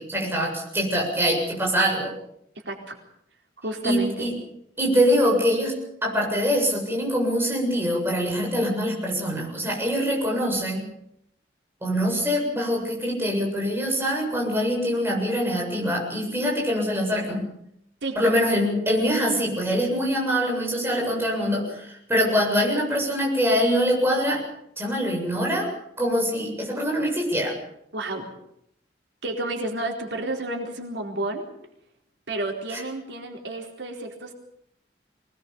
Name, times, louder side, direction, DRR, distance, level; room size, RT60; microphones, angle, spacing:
voice 1, 0.0-2.1 3.8-4.3 4.8-10.9 11.8-17.5 18.2-24.4 24.8-25.7 26.0-27.5, equal, 15° right, -1 dB, 7.6 m, -24 dB
voice 2, 2.7-3.0 3.6-4.3 18.0-18.2 27.9-28.3 29.2-31.5 32.3-34.3, right 2 dB, 85° right, 2 dB, 4.2 m, -31 dB
24.5 x 19.5 x 7.2 m, 0.74 s
head